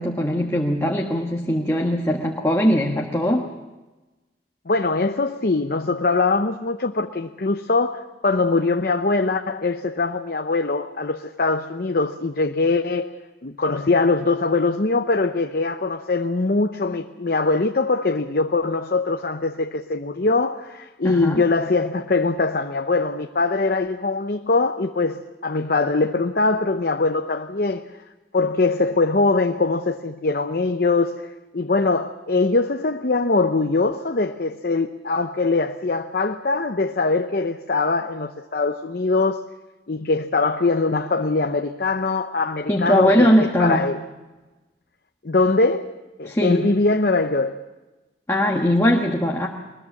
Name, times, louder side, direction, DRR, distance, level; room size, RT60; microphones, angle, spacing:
voice 1, 0.0-3.5 21.0-21.4 42.7-43.9 46.2-46.7 48.3-49.5, equal, 15° left, 1.4 m, -20 dB
voice 2, 4.7-13.1 13.4-27.9 28.3-31.2 31.5-39.4 39.9-44.0 45.2-45.9 46.2-47.6, left 3 dB, 55° left, 0.8 m, -22 dB
22.0 x 20.5 x 7.3 m
head